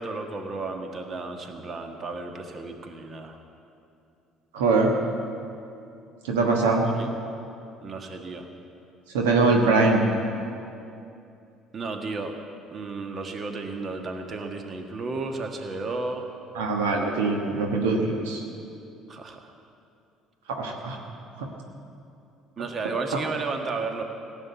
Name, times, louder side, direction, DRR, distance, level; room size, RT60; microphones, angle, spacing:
voice 1, 0.0-3.4 6.9-7.1 7.8-8.5 11.7-12.3 12.7-16.3 19.1-19.5 22.6-24.0, right 3 dB, 40° right, 4 dB, 1.5 m, -33 dB
voice 2, 4.5-4.9 6.2-6.8 9.1-10.1 16.5-18.4 20.6-21.0 21.4-21.5, right 3 dB, 80° right, 1 dB, 1.3 m, -22 dB
16.0 x 7.4 x 8.5 m, 2.6 s
hypercardioid pair, 60°, 0 cm